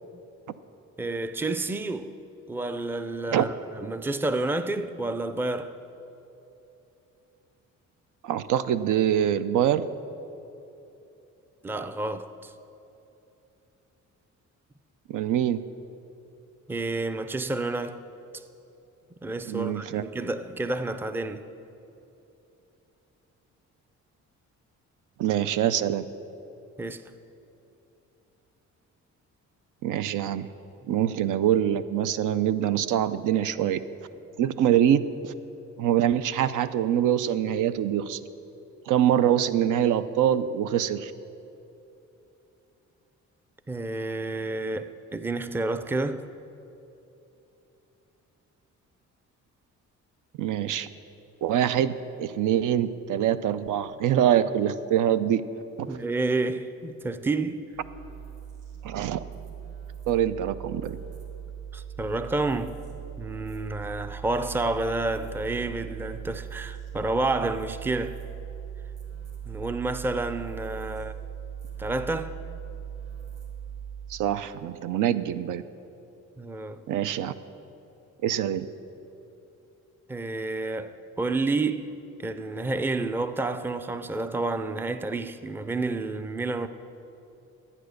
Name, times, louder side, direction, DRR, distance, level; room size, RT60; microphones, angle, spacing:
voice 1, 1.0-2.2 2.5-5.8 11.6-12.5 16.7-18.0 19.2-21.4 26.8-27.0 43.7-46.2 55.9-57.7 61.7-62.8 63.2-68.2 69.5-71.1 71.8-72.3 76.4-76.8 80.1-86.7, right 2 dB, 5° right, 0.4 m, -30 dB
voice 2, 8.2-9.9 15.1-15.6 19.5-20.0 25.2-26.1 29.8-30.5 30.9-33.8 34.4-35.3 35.8-38.2 38.9-41.1 50.4-50.9 51.4-51.9 52.2-55.4 55.8-56.0 58.8-59.2 60.1-61.0 74.1-75.6 76.9-77.3 78.2-78.7, right 10 dB, 90° right, 0.5 m, -24 dB
sound 1, 57.7-74.3, right 8 dB, 55° right, 2.6 m, -40 dB
12.5 x 8.7 x 6.5 m
cardioid pair, 125°, 30 cm